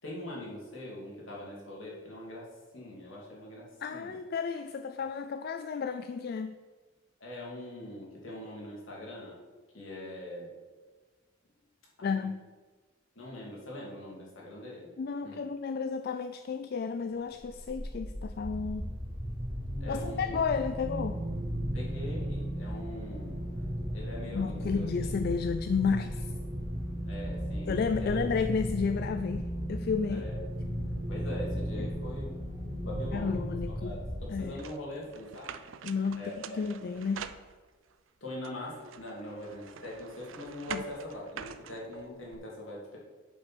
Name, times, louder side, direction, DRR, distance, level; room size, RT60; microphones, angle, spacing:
voice 1, 0.0-4.2 7.2-9.4 9.7-10.5 12.0-12.3 13.1-14.9 15.2-15.4 19.8-20.4 21.7-23.4 23.9-25.1 27.1-28.2 30.1-30.4 31.1-32.3 32.6-33.4 33.8-35.6 36.2-36.6 38.2-43.0, left 1 dB, 70° left, -4 dB, 2.9 m, -42 dB
voice 2, 3.8-6.6 12.0-12.4 15.0-18.9 19.9-21.2 24.3-26.3 27.7-30.2 31.8-31.9 33.1-34.0 34.3-34.6 35.8-37.3 40.7-40.8, left 5 dB, 50° left, 9 dB, 0.3 m, -32 dB
sound 1, 17.4-34.7, equal, 30° right, 1.7 m, -35 dB
sound 2, 34.6-37.9 38.4-42.4, right 7 dB, 70° right, 0.5 m, -45 dB
8.5 x 5.5 x 6.1 m, 1.4 s
head